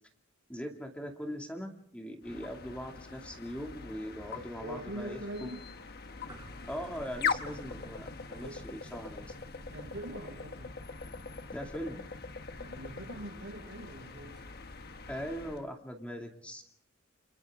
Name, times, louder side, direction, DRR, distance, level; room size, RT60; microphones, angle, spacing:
voice 1, 0.5-5.2 6.7-9.3 11.5-12.0 15.1-16.6, equal, 5° left, 2 dB, 2.4 m, -40 dB
sound 1, 2.2-15.6, left 5 dB, 50° left, 1.2 m, -41 dB
sound 2, 4.2-15.6, equal, 20° right, 6.1 m, -55 dB
voice 2, 4.6-5.6 8.3-8.6 9.7-10.8 12.6-14.4, right 1 dB, 85° right, 2 dB, 7.1 m, -43 dB
29.5 x 28.5 x 3.7 m, 0.66 s
head